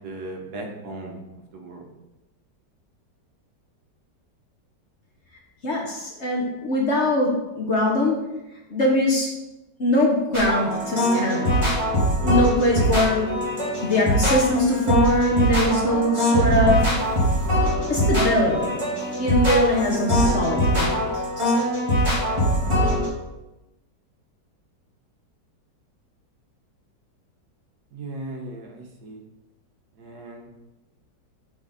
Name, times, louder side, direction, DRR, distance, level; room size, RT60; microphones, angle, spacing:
voice 1, 0.0-1.2 1.5-1.9 27.9-29.2 30.0-30.5, right 2 dB, 65° right, 2 dB, 1.4 m, -37 dB
voice 2, 5.6-8.1 8.7-9.3 9.8-11.7 12.2-13.3 13.8-16.8 17.9-18.8 19.2-21.7, left 1 dB, 50° left, -1 dB, 1.0 m, -22 dB
sound 1, 10.3-23.1, equal, 15° right, 1.6 m, -22 dB
6.3 x 4.2 x 4.0 m, 1.0 s
omnidirectional pair, 1.9 m